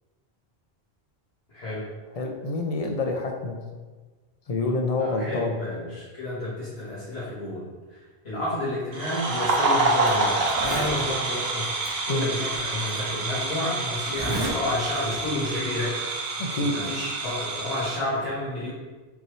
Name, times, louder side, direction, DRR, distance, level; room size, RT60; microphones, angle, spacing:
voice 1, 1.5-1.9 5.0-11.7 12.1-16.0 16.4-18.7, left 1 dB, 75° left, -10 dB, 1.5 m, -31 dB
voice 2, 2.2-3.6 4.5-5.5 12.1-12.3 16.4-16.7, left 2 dB, 50° left, 2 dB, 0.4 m, -27 dB
sound 1, 8.9-18.0, right 3 dB, 70° right, 0.9 m, -27 dB
Zipper (clothing), 9.4-9.6 10.1-10.2 10.4-11.0 11.8-11.9 12.9-13.0 14.1-14.6 14.9-15.2, right 1 dB, 25° right, 0.8 m, -31 dB
5.3 x 3.1 x 3.0 m, 1.3 s
omnidirectional pair, 1.1 m